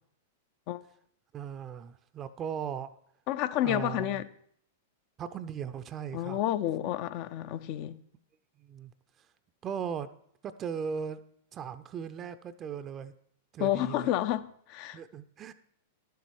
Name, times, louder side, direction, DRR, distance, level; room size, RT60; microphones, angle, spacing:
voice 1, 1.3-2.9 3.6-4.2 5.2-6.4 8.6-8.9 9.6-10.1 10.4-11.2 11.5-13.1 13.5-14.1 14.9-15.5, right 7 dB, 30° right, 0.5 m, -37 dB
voice 2, 3.3-4.3 6.1-8.0 13.6-15.0, left 13 dB, 50° left, 0.5 m, -30 dB
11.0 x 6.9 x 4.7 m
hypercardioid pair, 105°, 0 cm